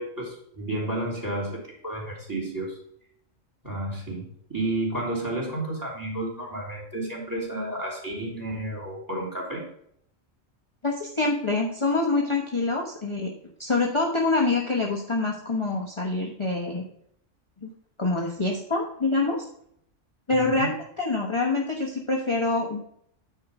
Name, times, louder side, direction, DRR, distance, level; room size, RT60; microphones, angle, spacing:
voice 1, 0.0-2.8 3.6-9.6 20.3-20.7, right 1 dB, 15° right, -1 dB, 3.1 m, -31 dB
voice 2, 10.8-13.3 13.6-16.9 17.6-17.7 18.0-19.5 20.3-22.8, left 3 dB, 25° left, -1 dB, 1.2 m, -26 dB
9.6 x 4.5 x 5.0 m, 0.68 s
omnidirectional pair, 1.3 m